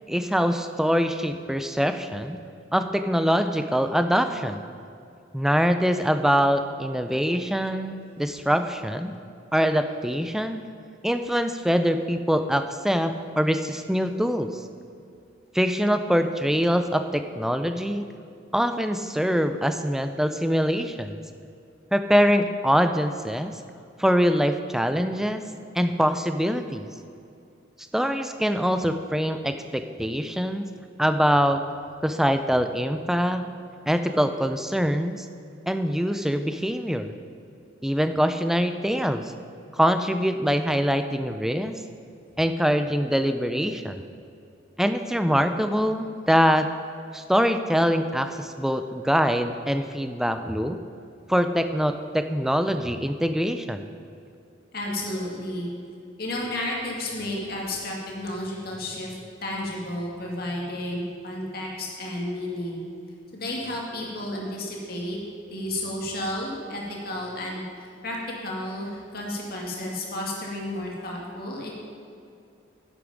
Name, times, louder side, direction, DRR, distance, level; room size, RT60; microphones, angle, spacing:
voice 1, 0.1-2.4 2.7-4.6 5.3-9.1 9.5-10.6 11.0-14.5 15.5-18.1 18.5-21.2 21.9-23.5 24.0-25.4 25.7-26.9 27.9-30.7 31.0-31.6 32.0-33.5 33.9-35.3 35.7-37.1 37.8-39.3 39.7-41.8 42.4-44.0 44.8-46.7 47.1-50.8 51.3-53.9, equal, ahead, 8 dB, 0.4 m, -24 dB
voice 2, 54.7-55.7 56.2-62.8 63.3-65.2 65.5-68.2 68.4-71.7, left 1 dB, 50° left, -2 dB, 2.1 m, -32 dB
11.0 x 8.2 x 5.1 m, 2.5 s
head